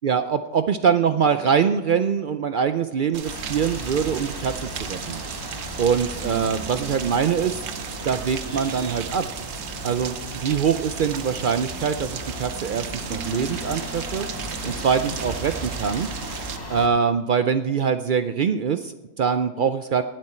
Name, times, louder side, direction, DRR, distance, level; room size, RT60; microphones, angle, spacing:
voice 1, 0.0-5.2 5.8-7.6 8.0-9.3 9.8-12.8 13.1-14.3 14.6-16.1 16.7-20.0, right 7 dB, 75° right, 10 dB, 0.4 m, -23 dB
Rain, 3.1-16.6, right 8 dB, 60° right, 1.0 m, -35 dB
sound 1, 3.2-16.9, equal, 15° left, 1.7 m, -36 dB
sound 2, 6.2-10.7 13.1-17.6, equal, 10° right, 1.1 m, -45 dB
19.0 x 7.7 x 4.3 m, 1.1 s
omnidirectional pair, 1.5 m